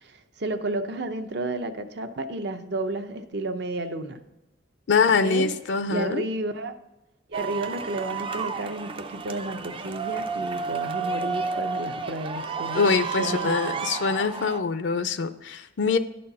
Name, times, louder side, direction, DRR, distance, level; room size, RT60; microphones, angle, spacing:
voice 1, 0.0-4.2 5.2-5.5 5.9-6.8 7.3-13.8, right 2 dB, 60° right, 8 dB, 0.7 m, -32 dB
voice 2, 4.9-6.2 12.7-16.0, left 5 dB, 65° left, 10 dB, 0.4 m, -24 dB
sound 1, 7.3-14.6, right 5 dB, 30° right, 0.4 m, -31 dB
11.0 x 4.4 x 5.3 m, 0.98 s
head